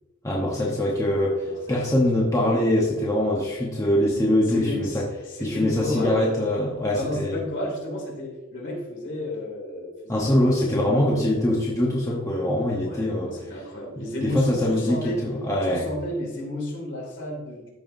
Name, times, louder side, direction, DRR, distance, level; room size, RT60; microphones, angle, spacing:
voice 1, 0.2-5.1 5.4-7.4 10.1-13.6 14.2-15.9, left 1 dB, 15° left, -4 dB, 1.0 m, -23 dB
voice 2, 1.4-2.0 4.5-6.2 6.9-11.3 12.8-15.2 15.6-17.7, left 1 dB, 60° left, -2 dB, 2.7 m, -32 dB
14.0 x 5.6 x 2.6 m, 1.2 s
head